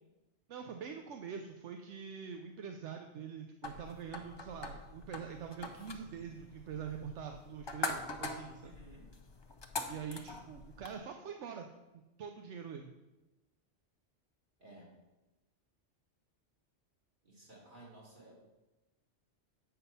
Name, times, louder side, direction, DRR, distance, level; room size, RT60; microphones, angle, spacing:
voice 1, 0.5-8.8 9.9-11.7 12.2-12.9, right 7 dB, 75° right, 4 dB, 0.9 m, -44 dB
sound 1, 3.6-11.0, left 3 dB, 30° left, 0.5 m, -43 dB
voice 2, 8.6-9.1 14.6-14.9 17.2-18.3, right 1 dB, 45° right, -4 dB, 2.5 m, -55 dB
7.8 x 5.7 x 5.4 m, 1.1 s
omnidirectional pair, 1.2 m